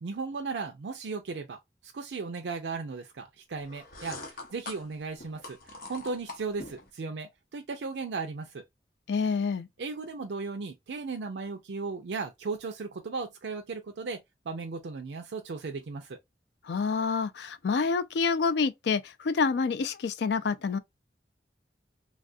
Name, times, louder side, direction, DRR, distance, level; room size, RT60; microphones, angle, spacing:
voice 1, 0.0-8.6 9.8-16.2, right 4 dB, 90° right, 0.5 m, -36 dB
sound 1, 3.6-6.9, left 2 dB, 50° left, 0.9 m, -44 dB
voice 2, 9.1-9.7 16.6-20.8, left 5 dB, 75° left, 0.4 m, -27 dB
3.3 x 2.4 x 2.5 m
head